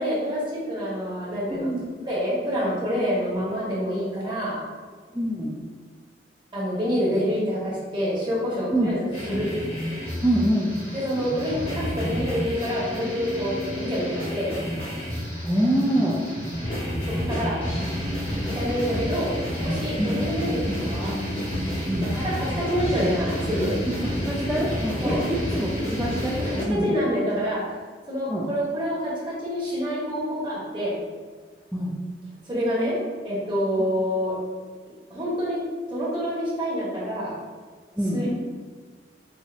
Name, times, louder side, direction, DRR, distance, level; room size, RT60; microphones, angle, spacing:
voice 1, 0.0-1.7 2.1-4.6 6.5-9.5 10.9-14.5 17.0-17.6 18.5-19.3 19.6-20.6 20.9-21.1 22.1-23.7 25.0-25.2 26.4-27.6 28.1-31.0 32.5-32.9 33.2-34.3 35.1-35.6 35.9-37.3 38.1-38.3, equal, 25° right, -8 dB, 1.2 m, -27 dB
voice 2, 1.5-1.9 5.1-5.5 8.7-8.9 10.2-10.7 15.4-16.2 20.0-20.2 20.7-20.8 21.9-22.1 23.9-27.0 28.3-28.5 31.7-31.9 38.0-38.2, equal, 5° right, -7 dB, 0.3 m, -25 dB
sound 1, 9.1-26.6, equal, 35° left, 0.9 m, -30 dB
4.8 x 2.6 x 2.5 m, 1.5 s
head